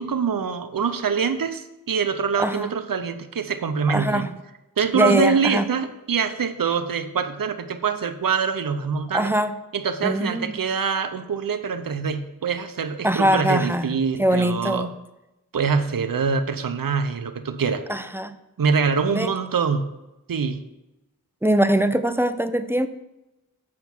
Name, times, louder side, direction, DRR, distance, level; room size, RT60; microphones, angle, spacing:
voice 1, 0.0-4.3 4.8-9.3 9.7-14.8 15.5-17.8 18.6-19.9 20.3-20.6, right 6 dB, 65° right, 9 dB, 0.7 m, -24 dB
voice 2, 3.9-4.4 4.9-5.7 9.1-9.5 10.0-10.5 13.0-13.9 14.2-14.9 17.9-18.3 19.1-19.3 21.4-22.9, right 1 dB, 5° right, 10 dB, 0.5 m, -22 dB
7.6 x 5.9 x 6.0 m, 0.97 s
wide cardioid pair, 65°, 36 cm